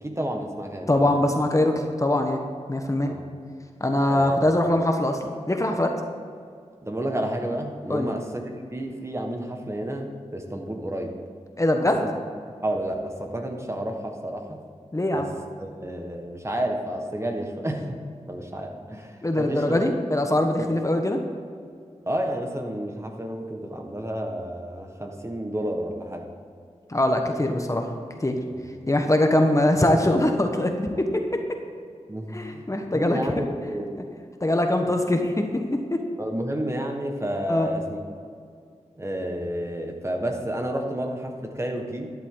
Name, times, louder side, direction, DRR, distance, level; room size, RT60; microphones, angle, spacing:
voice 1, 0.0-0.9 3.1-3.2 4.1-4.4 6.8-11.1 12.0-12.1 12.6-14.6 15.1-15.3 15.6-18.0 18.3-19.8 20.6-20.7 22.1-26.3 28.5-28.6 32.1-33.9 36.2-38.0 39.0-42.1, right 1 dB, 25° right, 3 dB, 1.5 m, -30 dB
voice 2, 0.9-1.7 2.0-2.4 2.7-3.1 3.8-5.9 7.9-8.1 11.6-12.0 14.9-15.3 19.2-21.2 26.9-27.9 28.2-28.4 28.9-31.2 32.3-33.2 34.4-36.0 37.5-37.7, left 1 dB, 25° left, 4 dB, 1.2 m, -22 dB
13.0 x 10.5 x 3.9 m, 2.3 s
cardioid pair, 55°, 12 cm